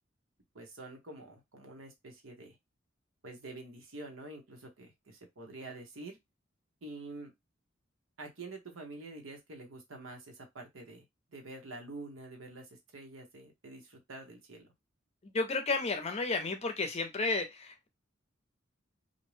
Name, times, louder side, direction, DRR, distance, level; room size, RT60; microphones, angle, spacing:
voice 1, 0.5-2.6 3.2-6.2 6.8-7.3 8.2-14.7, right 2 dB, 80° right, 0.9 m, -47 dB
voice 2, 15.3-17.9, left 3 dB, 30° left, 0.6 m, -32 dB
2.6 x 2.1 x 3.1 m
head